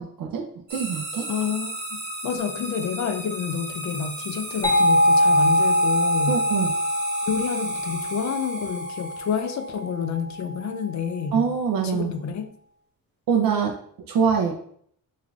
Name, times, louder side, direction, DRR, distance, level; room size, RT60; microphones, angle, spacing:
voice 1, 0.0-1.3 6.3-6.7 11.3-12.1 13.3-13.7 14.1-14.5, right 6 dB, 60° right, 2 dB, 0.6 m, -24 dB
sound 1, 0.7-9.6, right 2 dB, 25° right, 1.0 m, -35 dB
voice 2, 1.3-6.4 7.3-11.5 11.8-12.5, left 7 dB, 50° left, 9 dB, 0.5 m, -29 dB
sound 2, 4.6-10.1, equal, 10° left, 0.8 m, -23 dB
3.7 x 3.1 x 2.4 m, 0.63 s
cardioid pair, 110°, 38 cm